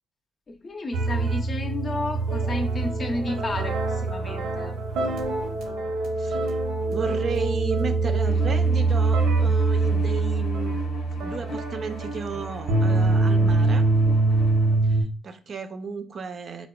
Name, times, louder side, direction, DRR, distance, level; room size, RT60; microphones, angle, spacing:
voice 1, 0.5-4.8, left 2 dB, 40° left, 4 dB, 0.5 m, -32 dB
sound 1, 0.9-15.0, right 3 dB, 90° right, 0.6 m, -24 dB
voice 2, 6.2-6.5 6.9-10.8 11.2-13.9 14.8-16.7, right 5 dB, 50° right, 8 dB, 0.3 m, -33 dB
Bowed string instrument, 8.2-14.8, left 1 dB, 75° left, 0.7 m, -37 dB
4.4 x 2.2 x 2.2 m, 0.36 s
cardioid pair, 90°, 0 cm